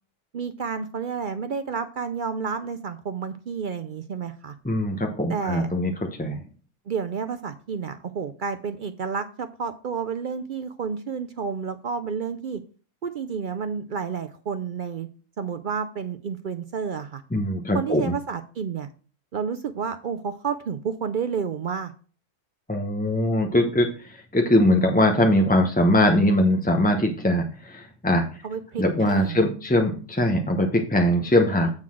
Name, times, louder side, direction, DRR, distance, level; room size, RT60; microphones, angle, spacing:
voice 1, 0.3-4.5 5.3-5.7 6.9-12.6 13.0-15.1 15.4-17.2 17.7-18.9 19.3-21.9 28.4-29.5, right 6 dB, 65° right, 9 dB, 0.5 m, -30 dB
voice 2, 4.6-6.4 17.3-18.1 22.7-28.3 28.8-31.7, left 1 dB, 10° left, 3 dB, 0.6 m, -21 dB
8.9 x 3.9 x 6.1 m, 0.39 s
omnidirectional pair, 1.4 m